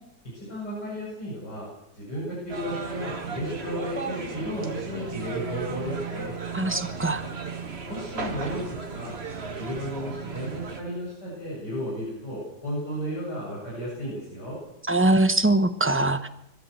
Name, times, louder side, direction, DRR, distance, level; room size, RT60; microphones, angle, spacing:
voice 1, 0.3-1.7 1.9-6.4 7.9-9.2 9.6-14.6, equal, 80° left, -6 dB, 8.7 m, -33 dB
sound 1, 2.5-10.8, right 5 dB, 40° right, 1.9 m, -35 dB
voice 2, 6.5-7.2 14.9-16.3, right 2 dB, 10° right, 8 dB, 0.8 m, -22 dB
22.0 x 15.0 x 8.1 m, 0.81 s
omnidirectional pair, 1.8 m